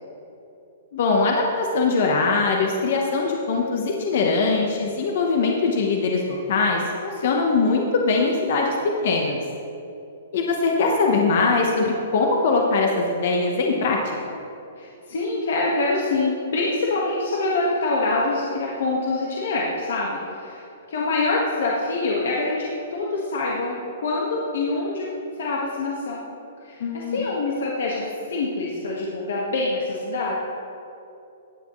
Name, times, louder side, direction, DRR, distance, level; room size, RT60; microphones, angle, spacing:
voice 1, 0.9-8.8 9.0-9.4 10.3-14.0 26.8-27.2, left 3 dB, 45° left, 0 dB, 1.0 m, -21 dB
voice 2, 14.8-25.1 25.4-26.2 26.6-30.3, left 2 dB, 70° left, -3 dB, 1.5 m, -25 dB
16.0 x 9.7 x 3.2 m, 2.8 s
hypercardioid pair, 175°, 0 cm